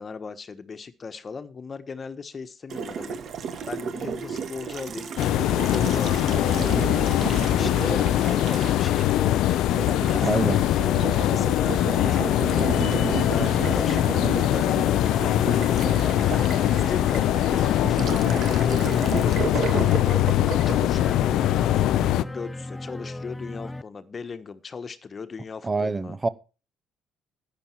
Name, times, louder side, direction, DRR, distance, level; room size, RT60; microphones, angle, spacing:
voice 1, 0.0-3.2 3.6-9.9 10.2-11.8 12.1-16.4 16.8-20.3 20.7-26.2, left 5 dB, 40° left, 1.3 m, -37 dB
Water tap faucet, 2.7-21.9, right 6 dB, 55° right, 1.8 m, -33 dB
sound 1, 5.2-22.2, left 13 dB, 70° left, 0.6 m, -22 dB
voice 2, 10.2-10.6 25.6-26.3, right 3 dB, 25° right, 1.0 m, -25 dB
sound 2, 12.0-23.8, left 2 dB, 10° left, 0.8 m, -36 dB
11.5 x 8.9 x 4.6 m
hypercardioid pair, 55°, 0 cm